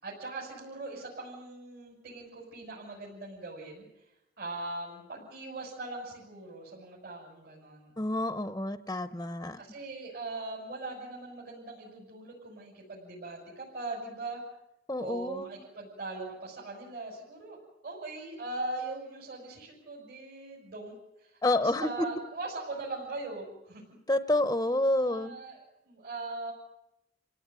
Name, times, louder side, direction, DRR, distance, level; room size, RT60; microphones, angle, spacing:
voice 1, 0.0-3.8 4.4-7.9 9.6-14.4 15.0-17.6 17.8-20.9 21.2-23.8 25.0-26.5, right 2 dB, 60° right, -3 dB, 6.7 m, -40 dB
voice 2, 8.0-9.6 14.9-15.4 21.4-22.1 24.1-25.4, left 1 dB, 15° left, 10 dB, 0.8 m, -28 dB
29.0 x 17.5 x 9.6 m, 0.89 s
head